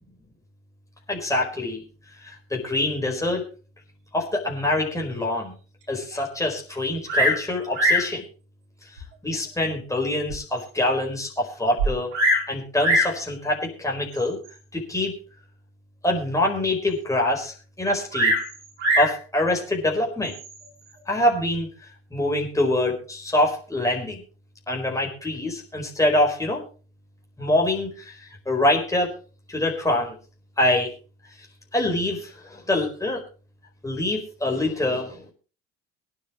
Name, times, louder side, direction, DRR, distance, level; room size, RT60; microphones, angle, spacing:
voice 1, 1.1-1.8 2.2-3.4 4.1-5.5 5.9-8.2 9.2-12.2 12.5-14.4 14.7-15.1 16.0-18.3 19.0-20.3 21.1-21.7 22.1-24.2 24.7-26.6 27.4-28.2 28.5-29.1 29.5-30.1 30.6-30.9 31.7-33.2 33.8-35.3, left 1 dB, 10° left, 0 dB, 4.6 m, -25 dB
Bird vocalization bird call bird song, 7.1-7.4 7.7-8.1 9.0-9.1 9.7-9.8 10.3-10.4 10.6-10.7 11.8-12.5 12.8-13.2 14.1-14.5 18.1-19.2 20.2-20.7, equal, 85° right, 5.6 m, -22 dB
23.5 x 9.8 x 3.1 m, 0.37 s
hypercardioid pair, 60°, 34 cm